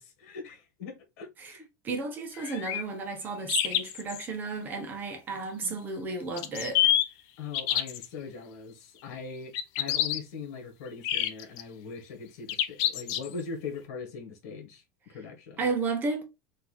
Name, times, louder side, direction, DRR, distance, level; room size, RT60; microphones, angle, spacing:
voice 1, 0.0-1.7 5.6-5.7 7.4-15.7, left 5 dB, 65° left, 1.8 m, -41 dB
voice 2, 1.8-6.8 15.6-16.2, right 3 dB, 20° right, 0.9 m, -33 dB
sound 1, 2.3-2.8 3.5-4.3 6.4-7.0 7.5-8.1 9.5-10.2 11.0-11.6 12.5-13.4, left 11 dB, 50° left, 0.6 m, -27 dB
4.4 x 2.7 x 4.2 m
cardioid pair, 175°, 9 cm